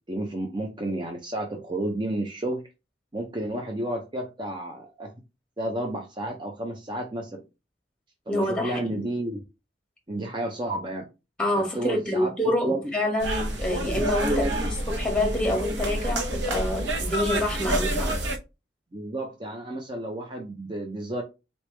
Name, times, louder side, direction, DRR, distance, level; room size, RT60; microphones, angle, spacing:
voice 1, 0.1-2.6 3.1-5.1 5.6-7.4 8.3-9.4 10.1-11.1 11.6-12.3 12.6-12.9 13.8-14.7 18.9-21.2, right 1 dB, 25° right, 0.6 m, -31 dB
voice 2, 8.3-9.0 11.4-18.2, left 1 dB, 5° left, 1.5 m, -27 dB
sound 1, 13.2-18.4, right 1 dB, 90° right, 1.0 m, -28 dB
4.1 x 3.3 x 3.2 m
head